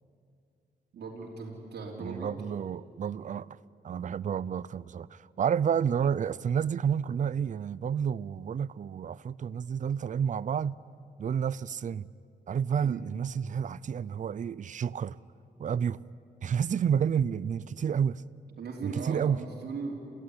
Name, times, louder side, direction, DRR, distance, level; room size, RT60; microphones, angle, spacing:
voice 1, 0.9-2.3 12.8-13.1 18.6-20.0, right 4 dB, 90° right, 3.4 m, -38 dB
voice 2, 2.0-3.6 3.8-10.8 11.2-12.1 12.5-15.2 15.6-16.0 16.4-18.2 18.8-19.4, right 7 dB, 50° right, 0.5 m, -30 dB
29.0 x 15.5 x 9.8 m
wide cardioid pair, 105°, 17 cm